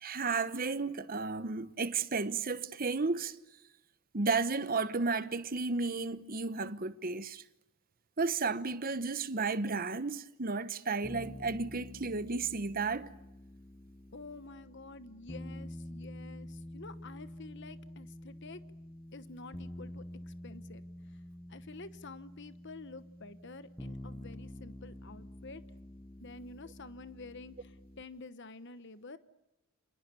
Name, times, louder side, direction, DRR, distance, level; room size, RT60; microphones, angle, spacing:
voice 1, 0.0-3.4 4.1-7.4 8.2-13.1, right 4 dB, 40° right, 1.0 m, -33 dB
sound 1, 11.0-28.0, left 1 dB, 10° left, 0.9 m, -48 dB
voice 2, 14.1-18.6 19.1-20.8 21.1-21.2 21.5-25.6 26.2-29.2, left 3 dB, 50° left, 1.1 m, -49 dB
29.5 x 27.5 x 6.9 m
head